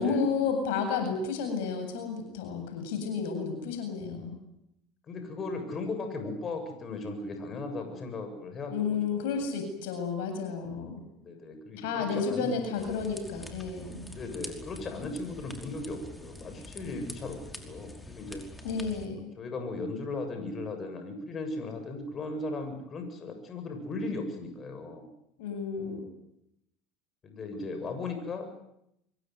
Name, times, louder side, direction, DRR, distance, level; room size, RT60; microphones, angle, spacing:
voice 1, 0.0-4.4 8.7-11.0 11.8-14.0 18.6-19.3 25.4-26.1, left 5 dB, 75° left, 6 dB, 8.0 m, -31 dB
voice 2, 5.1-9.5 11.2-12.6 14.1-18.4 19.4-25.1 27.2-28.5, left 3 dB, 35° left, 6 dB, 7.5 m, -37 dB
sound 1, 12.8-19.1, left 1 dB, 10° left, 5.3 m, -45 dB
25.5 x 22.5 x 9.5 m, 0.79 s
hypercardioid pair, 80°, 0 cm